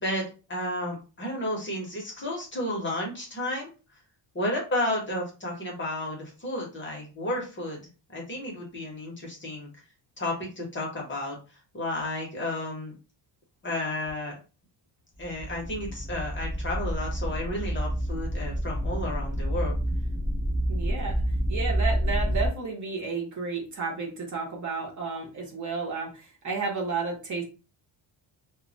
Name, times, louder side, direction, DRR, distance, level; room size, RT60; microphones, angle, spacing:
voice 1, 0.5-3.7 4.3-7.8 8.1-9.7 10.2-11.4 11.7-12.9 13.6-14.4 15.2-19.7, left 1 dB, 25° left, -1 dB, 0.7 m, -32 dB
sound 1, 15.2-22.5, equal, 20° right, 0.3 m, -28 dB
voice 2, 20.7-21.1 21.5-27.4, right 4 dB, 40° right, -1 dB, 0.8 m, -32 dB
2.1 x 2.1 x 3.7 m, 0.32 s
cardioid pair, 175°, 47 cm